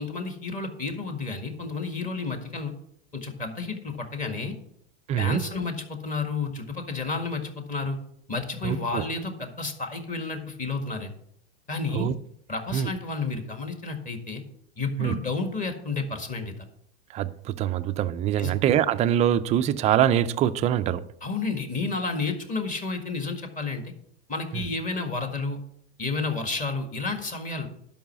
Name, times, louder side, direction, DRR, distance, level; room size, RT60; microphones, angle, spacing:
voice 1, 0.0-2.7 3.1-4.5 5.2-8.0 8.3-11.1 11.7-12.1 12.5-14.4 14.8-16.7 18.4-18.5 21.2-23.8 24.3-25.6 26.0-27.7, left 3 dB, 25° left, 1.8 m, -31 dB
voice 2, 5.1-5.4 8.6-9.0 11.9-12.1 12.7-12.9 15.0-15.1 17.1-21.0 24.5-24.7, right 10 dB, 20° right, 0.4 m, -24 dB
11.5 x 5.5 x 6.0 m
hypercardioid pair, 120°, 34 cm